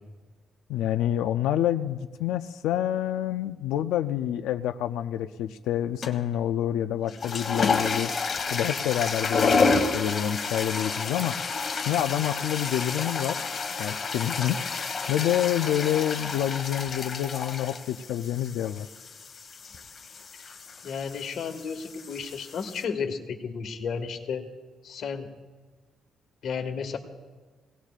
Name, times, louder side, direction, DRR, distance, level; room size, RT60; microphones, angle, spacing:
voice 1, 0.7-8.1 8.5-11.4 11.9-13.4 13.8-14.6 15.1-18.9, left 11 dB, 90° left, 9 dB, 0.4 m, -27 dB
sound 1, 6.0-6.4 7.0-22.8, left 4 dB, 45° left, 1.6 m, -30 dB
voice 2, 20.8-24.4 24.8-25.3 26.4-27.0, left 6 dB, 65° left, 5 dB, 1.7 m, -33 dB
23.5 x 18.0 x 2.5 m, 1.3 s
cardioid pair, 90°, 0 cm